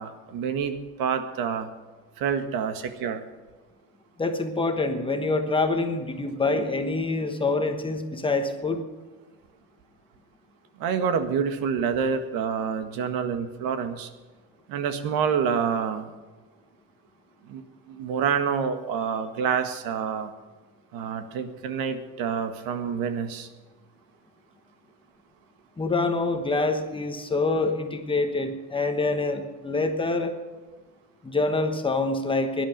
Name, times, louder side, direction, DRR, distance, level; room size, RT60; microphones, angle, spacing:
voice 1, 0.0-1.7 2.2-3.2 10.8-14.1 14.7-16.1 17.5-17.6 17.9-20.3 20.9-23.5, right 6 dB, 65° right, 8 dB, 1.7 m, -27 dB
voice 2, 4.2-8.8 25.8-30.3 31.2-32.7, left 3 dB, 15° left, 5 dB, 1.2 m, -26 dB
17.5 x 11.0 x 5.3 m, 1.3 s
cardioid pair, 160°, 37 cm